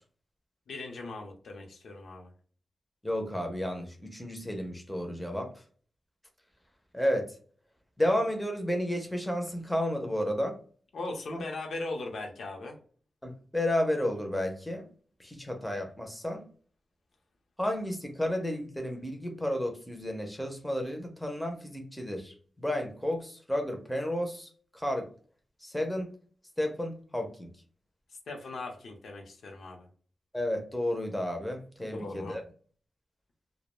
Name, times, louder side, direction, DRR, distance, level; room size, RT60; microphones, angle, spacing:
voice 1, 0.7-2.3 10.9-12.8 28.3-29.9 31.8-32.4, left 2 dB, 85° left, 1 dB, 0.6 m, -39 dB
voice 2, 3.0-5.5 6.9-7.3 8.0-10.6 11.3-11.4 13.2-14.9 15.2-16.4 17.6-25.1 25.6-26.1 26.6-27.5 30.3-32.4, left 1 dB, 5° left, 3 dB, 0.4 m, -32 dB
2.2 x 2.0 x 2.9 m, 0.43 s
wide cardioid pair, 155°, 0 cm